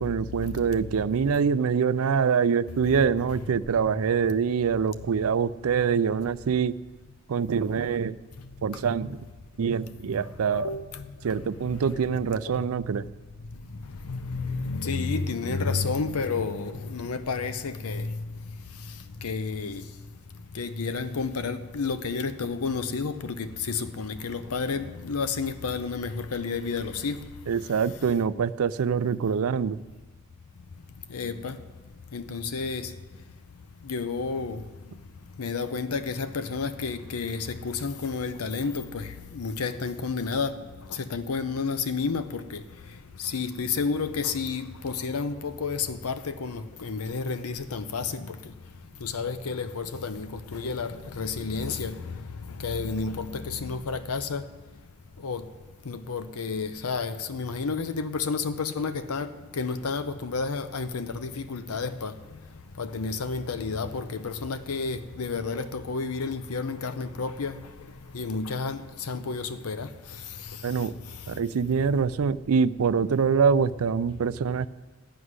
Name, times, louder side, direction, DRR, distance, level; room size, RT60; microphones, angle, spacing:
voice 1, 0.0-6.8 7.3-8.2 8.6-9.2 9.6-10.7 11.2-13.1 27.5-29.8 70.6-70.9 71.3-74.7, right 6 dB, 75° right, 0.4 m, -25 dB
voice 2, 10.5-11.0 11.9-12.0 14.1-18.1 19.2-19.8 20.5-27.2 31.1-31.6 32.1-32.9 33.9-34.6 35.4-40.5 40.9-42.6 43.2-48.4 49.0-52.1 52.6-54.4 55.2-55.4 55.9-62.1 62.8-67.6 68.1-69.9, left 4 dB, 85° left, 0.6 m, -31 dB
13.0 x 6.3 x 9.6 m
head